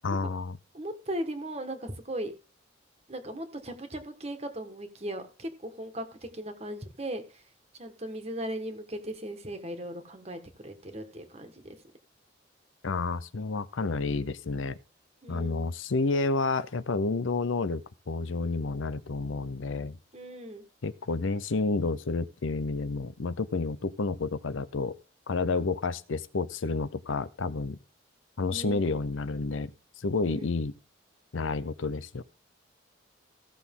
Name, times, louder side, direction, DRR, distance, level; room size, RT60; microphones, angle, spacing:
voice 1, 0.0-0.6 12.8-14.8 15.3-20.0 20.8-25.0 25.3-27.8 28.4-29.7 30.0-30.7 31.3-32.2, left 3 dB, 85° left, 0.6 m, -30 dB
voice 2, 0.7-2.3 3.1-7.4 7.8-11.8 15.2-15.6 20.1-20.6 28.5-28.9 30.2-30.5, right 1 dB, 35° right, 1.5 m, -38 dB
16.0 x 6.2 x 3.7 m
head